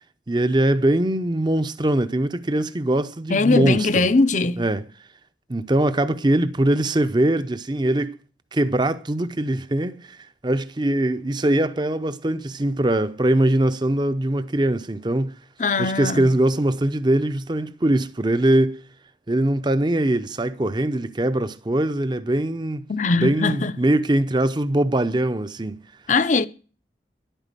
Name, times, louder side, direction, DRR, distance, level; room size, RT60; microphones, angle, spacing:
voice 1, 0.3-4.1 4.6-4.8 5.5-8.2 8.5-15.4 15.8-18.8 19.3-22.8 23.2-25.8, right 1 dB, 25° right, 0.6 m, -22 dB
voice 2, 3.3-4.6 15.6-16.3 22.9-23.7 26.1-26.5, left 3 dB, 40° left, 0.7 m, -20 dB
11.0 x 9.1 x 8.2 m
head